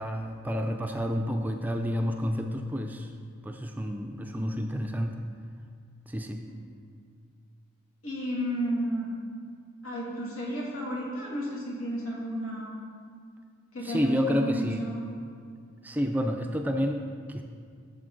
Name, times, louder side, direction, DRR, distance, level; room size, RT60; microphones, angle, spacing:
voice 1, 0.0-3.1 3.4-5.2 6.1-6.4 13.8-14.8 15.8-17.4, equal, 10° right, 4 dB, 0.4 m, -29 dB
voice 2, 8.0-9.1 9.8-12.7 13.7-15.0, equal, 80° left, -5 dB, 2.6 m, -32 dB
12.5 x 6.9 x 3.9 m, 2.2 s
head